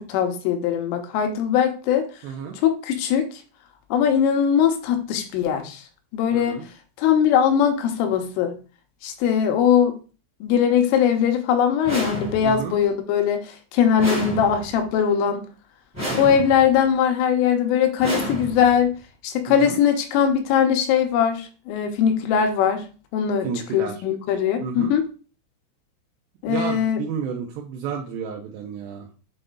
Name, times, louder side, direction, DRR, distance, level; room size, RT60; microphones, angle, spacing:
voice 1, 0.0-2.0 2.6-3.3 3.9-5.8 6.1-6.6 7.0-8.5 9.0-10.0 10.4-13.5 13.7-15.4 16.2-18.9 19.2-22.9 23.1-25.1 26.4-27.0, left 8 dB, 85° left, 5 dB, 3.5 m, -20 dB
voice 2, 2.2-2.6 6.3-6.6 12.4-12.8 16.1-16.4 19.5-19.8 23.4-24.0 24.6-24.9 26.5-29.1, right 7 dB, 75° right, 0 dB, 2.6 m, -31 dB
sound 1, 11.8-12.7 14.0-14.9 15.9-16.8 18.0-18.9, equal, 10° right, 1.1 m, -30 dB
7.7 x 4.1 x 3.8 m, 0.35 s
omnidirectional pair, 5.8 m